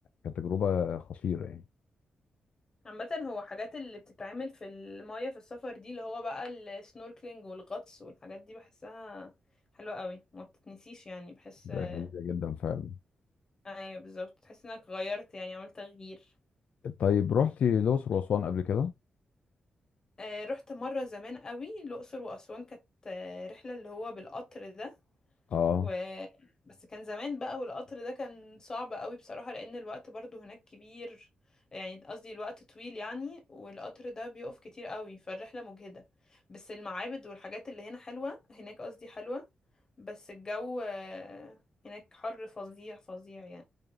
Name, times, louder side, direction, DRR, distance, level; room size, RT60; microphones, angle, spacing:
voice 1, 0.2-1.6 11.7-12.9 16.8-18.9 25.5-25.9, left 8 dB, 60° left, 0.3 m, -29 dB
voice 2, 2.8-9.3 9.7-12.1 13.6-16.2 20.2-24.9 25.8-26.3 26.6-31.3 31.7-36.0 36.3-39.4 40.0-43.6, left 2 dB, 25° left, 1.2 m, -41 dB
5.0 x 2.4 x 2.5 m
wide cardioid pair, 170°, 3 cm